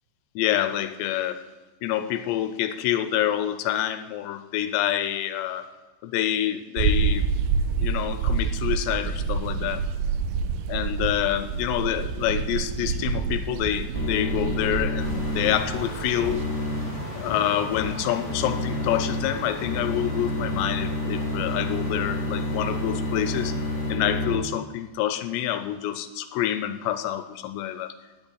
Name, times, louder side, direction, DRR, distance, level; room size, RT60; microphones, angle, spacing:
voice 1, 0.4-1.4 1.8-5.7 6.0-7.3 7.8-9.8 10.7-16.4 17.2-23.5 23.9-27.9, left 11 dB, 80° left, 11 dB, 2.8 m, -27 dB
sound 1, 6.8-16.5, right 5 dB, 85° right, 2.2 m, -27 dB
sound 2, 13.9-24.3, left 2 dB, 40° left, 1.2 m, -30 dB
sound 3, 15.0-23.9, right 2 dB, 35° right, 3.3 m, -39 dB
16.0 x 6.8 x 9.9 m, 1.2 s
omnidirectional pair, 5.2 m